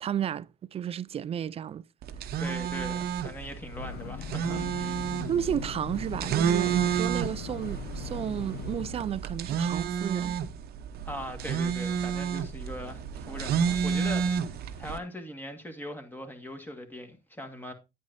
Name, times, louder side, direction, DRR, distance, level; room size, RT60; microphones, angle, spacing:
voice 1, 0.0-1.8 5.3-10.4, right 9 dB, 35° right, 0.4 m, -32 dB
sound 1, 2.0-15.0, right 7 dB, 65° right, 0.9 m, -31 dB
voice 2, 2.4-5.0 11.1-17.7, equal, 10° left, 1.8 m, -40 dB
Breathing / Train, 3.5-9.2, left 10 dB, 70° left, 0.7 m, -40 dB
9.5 x 8.8 x 2.7 m
cardioid pair, 110°, 17 cm